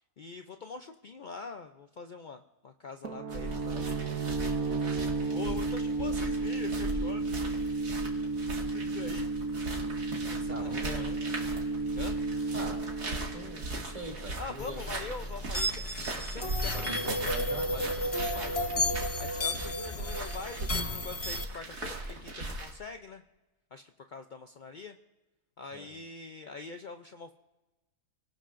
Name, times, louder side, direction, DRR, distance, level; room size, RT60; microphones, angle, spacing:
voice 1, 0.2-4.3 5.2-7.3 8.6-9.3 10.1-11.2 11.9-12.2 14.4-17.4 17.7-18.7 19.0-23.2 23.7-25.0 25.6-27.3, left 4 dB, 70° left, 6 dB, 0.4 m, -44 dB
sound 1, 3.0-14.6, right 3 dB, 70° right, 1.4 m, -33 dB
sound 2, 3.3-22.7, right 2 dB, 85° right, 2.8 m, -39 dB
voice 2, 10.5-11.1 12.5-12.8 13.1-14.9 16.7-17.7 25.7-25.9, right 1 dB, 25° right, -1 dB, 2.6 m, -41 dB
sound 3, 14.6-21.4, left 1 dB, 30° left, 0.7 m, -33 dB
28.0 x 18.5 x 2.6 m, 1.1 s
omnidirectional pair, 1.6 m